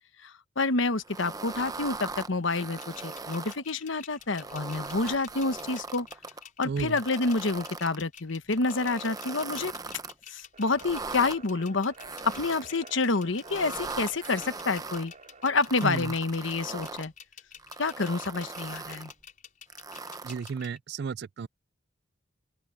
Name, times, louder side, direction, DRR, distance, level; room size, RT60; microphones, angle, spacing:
voice 1, 0.2-6.1 6.6-9.7 10.3-11.9 12.2-15.1 15.4-17.1 17.8-19.1, left 3 dB, 70° left, 1.1 m, -28 dB
sound 1, 1.0-3.6 4.2-6.4 6.9-8.0 8.5-10.1 10.7-11.4 12.0-12.8 13.3-15.0 15.6-17.1 17.6-19.1 19.7-20.6, right 3 dB, 20° right, 0.8 m, -39 dB
sound 2, 2.8-20.8, left 8 dB, 45° left, 5.1 m, -49 dB
voice 2, 6.6-7.0 15.8-16.1 20.2-21.5, right 5 dB, 55° right, 0.4 m, -33 dB
sound 3, 10.5-16.0, right 4 dB, 40° right, 5.5 m, -50 dB
open air
head